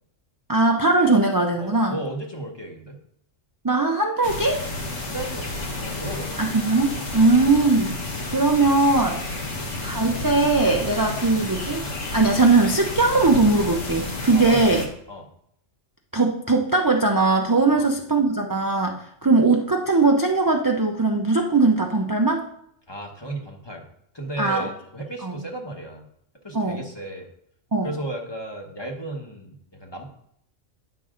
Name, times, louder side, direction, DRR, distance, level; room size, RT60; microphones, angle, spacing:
voice 1, 0.5-1.9 3.6-4.6 6.4-7.9 8.3-9.2 9.8-11.8 12.1-14.8 16.1-22.5 24.4-24.7 25.2-25.3 26.5-26.8 27.7-27.9, right 3 dB, 25° right, 1 dB, 0.4 m, -20 dB
voice 2, 1.6-3.0 5.0-6.5 7.2-7.3 9.4-9.7 14.3-14.7 15.1-15.3 17.7-17.9 19.2-19.4 22.9-23.9 24.1-26.1 26.4-27.3 27.8-30.1, right 1 dB, 20° left, 1 dB, 1.1 m, -35 dB
sound 1, 4.2-14.9, left 2 dB, 75° left, 1.6 m, -31 dB
9.6 x 5.7 x 3.8 m, 0.70 s
omnidirectional pair, 1.3 m